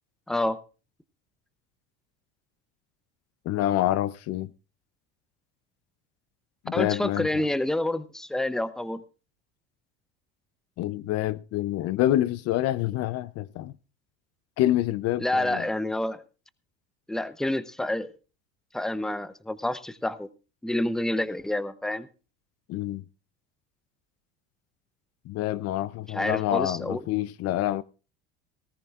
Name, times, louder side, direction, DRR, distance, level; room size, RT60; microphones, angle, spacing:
voice 1, 0.3-0.6 6.7-9.0 15.2-16.2 17.1-18.1 18.7-20.3 20.6-22.1 26.1-27.0, left 1 dB, ahead, 0.7 m, -28 dB
voice 2, 3.5-4.5 6.6-7.3 10.8-13.7 14.6-15.7 22.7-23.0 25.3-27.8, left 14 dB, 55° left, 0.6 m, -27 dB
19.0 x 14.0 x 2.4 m
supercardioid pair, 95°, 30 cm